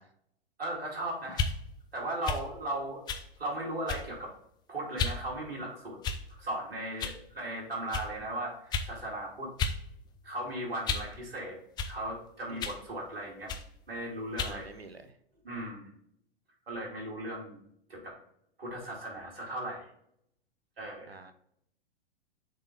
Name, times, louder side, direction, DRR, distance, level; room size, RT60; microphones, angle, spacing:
voice 1, 0.6-1.4 1.9-3.0 3.4-4.3 4.7-6.0 6.3-9.5 10.2-11.6 11.9-13.5 13.9-14.7 15.4-15.9 16.7-17.6 17.9-18.2 18.6-19.9 20.8-21.2, right 1 dB, 70° right, -3 dB, 2.5 m, -37 dB
sound 1, 1.3-1.6 2.2-2.5 3.1-3.3 3.9-4.2 5.0-5.2 6.0-6.4 7.0-7.2 7.9-8.1 8.7-8.9 9.6-9.8 10.1-11.1 11.8-12.0 12.6-12.8 13.5-13.7 14.4-14.6, left 5 dB, 15° left, 0.4 m, -33 dB
voice 2, 12.5-12.8 14.4-15.1 21.1-21.3, right 3 dB, 90° right, 10 dB, 0.7 m, -48 dB
6.7 x 4.0 x 3.6 m, 0.71 s
figure-of-eight pair, 100°, 30 cm